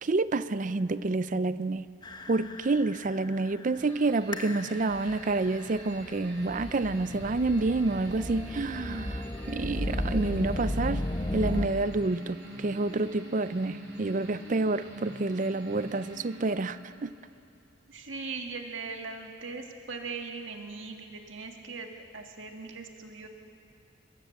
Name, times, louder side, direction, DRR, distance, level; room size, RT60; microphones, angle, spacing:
voice 1, 0.0-1.9 2.3-17.1, right 3 dB, 45° right, 14 dB, 0.5 m, -29 dB
sound 1, 2.0-11.7, left 1 dB, 25° left, 0.9 m, -35 dB
sound 2, 3.8-16.9, equal, 65° right, 5.1 m, -46 dB
voice 2, 17.9-23.3, right 4 dB, 90° right, 3 dB, 1.8 m, -40 dB
23.0 x 21.5 x 7.1 m, 2.6 s
head